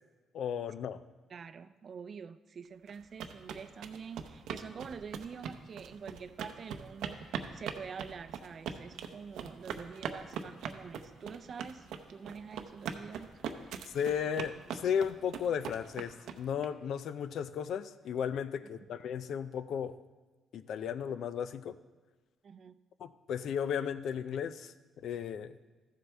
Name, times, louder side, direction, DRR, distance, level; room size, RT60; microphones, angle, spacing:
voice 1, 0.3-1.0 13.9-19.9 20.5-21.7 23.0-24.7 25.0-25.6, left 8 dB, 70° left, 13 dB, 0.5 m, -35 dB
voice 2, 1.3-13.3 22.4-22.8, right 6 dB, 50° right, 11 dB, 0.5 m, -46 dB
sound 1, 2.9-16.7, right 7 dB, 85° right, 0.7 m, -41 dB
14.0 x 7.5 x 3.4 m, 1.3 s
cardioid pair, 90°, 0 cm